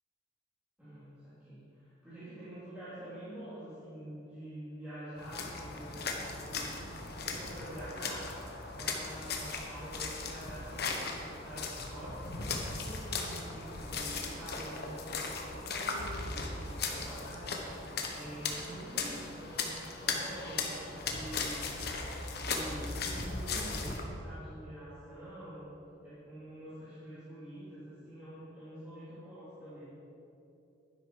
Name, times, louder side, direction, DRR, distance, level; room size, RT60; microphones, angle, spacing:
voice 1, 0.8-6.0 6.3-8.3 8.7-17.6 18.1-21.7 22.3-25.7 26.0-29.9, right 1 dB, 5° right, -14 dB, 3.2 m, -46 dB
sound 1, 5.2-24.0, left 4 dB, 50° left, 1.3 m, -38 dB
12.0 x 10.5 x 4.9 m, 2.8 s
head